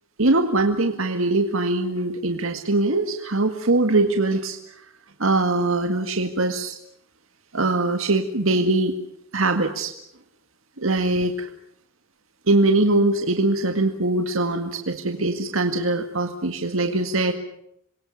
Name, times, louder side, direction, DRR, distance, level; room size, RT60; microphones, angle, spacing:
voice 1, 0.2-4.8 5.2-6.8 7.5-8.9 9.3-9.9 10.8-11.5 12.5-17.3, right 2 dB, 70° right, 6 dB, 2.0 m, -22 dB
27.5 x 23.0 x 7.1 m, 0.76 s
head